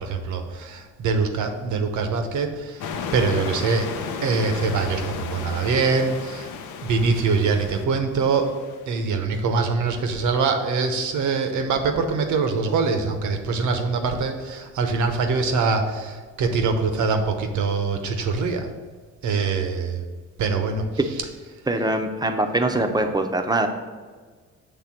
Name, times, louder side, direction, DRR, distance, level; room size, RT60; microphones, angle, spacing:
voice 1, 0.0-2.8 3.1-3.9 4.2-6.5 6.8-8.5 8.9-18.7 19.2-20.0 20.4-20.8, right 4 dB, 75° right, 6 dB, 0.9 m, -23 dB
sound 1, 2.8-9.0, left 6 dB, 80° left, 0.7 m, -33 dB
voice 2, 21.7-23.7, right 2 dB, 15° right, 5 dB, 0.7 m, -22 dB
6.7 x 3.4 x 5.9 m, 1.5 s
cardioid pair, 90°, 30 cm